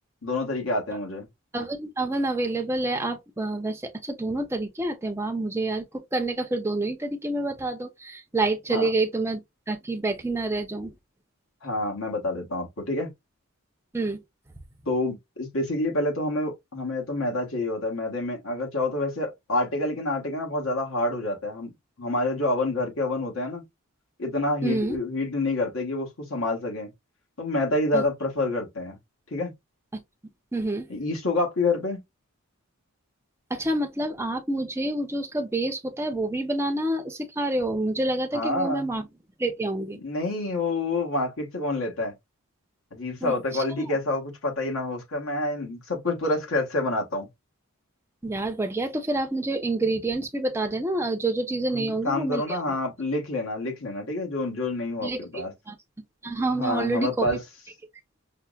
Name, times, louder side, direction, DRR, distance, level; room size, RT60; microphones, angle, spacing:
voice 1, 0.2-1.3 8.7-8.9 11.6-13.1 14.9-21.7 22.0-23.6 24.2-26.9 27.4-29.0 29.3-29.5 30.9-32.0 38.3-38.9 40.0-42.1 42.9-47.3 51.7-55.5 56.5-57.4, left 2 dB, 65° left, 1.2 m, -28 dB
voice 2, 1.5-9.4 9.7-10.9 13.9-14.2 24.6-25.0 27.9-28.0 30.5-30.9 33.5-39.1 39.4-40.0 43.2-43.9 48.2-52.6 55.0-55.8 56.2-57.4, right 2 dB, 10° right, 0.5 m, -28 dB
5.5 x 2.1 x 2.3 m
head